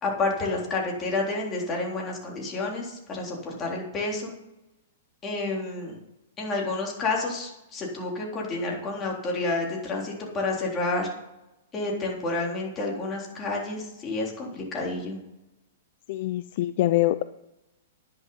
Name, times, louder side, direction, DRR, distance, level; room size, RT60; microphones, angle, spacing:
voice 1, 0.0-4.3 5.2-6.0 6.4-11.1 11.7-15.2, left 2 dB, 20° left, -2 dB, 3.6 m, -29 dB
voice 2, 16.1-17.2, left 16 dB, 50° left, 13 dB, 0.5 m, -24 dB
10.5 x 10.5 x 5.6 m, 0.93 s
hypercardioid pair, 150°, 0 cm